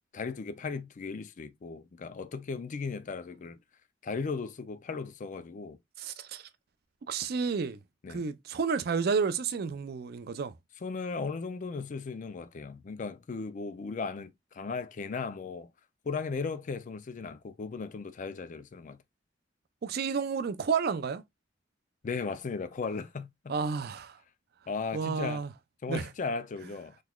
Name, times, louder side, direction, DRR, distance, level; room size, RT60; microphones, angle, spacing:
voice 1, 0.1-3.6 4.0-5.8 8.0-8.2 10.8-15.7 16.1-19.0 22.0-23.5 24.7-25.4 25.8-26.9, left 4 dB, 40° left, 0.4 m, -36 dB
voice 2, 6.0-6.5 7.1-7.8 8.1-10.5 19.8-21.2 23.5-24.2 24.9-25.5 25.9-26.1, right 5 dB, 55° right, 0.4 m, -31 dB
3.9 x 3.1 x 2.2 m
head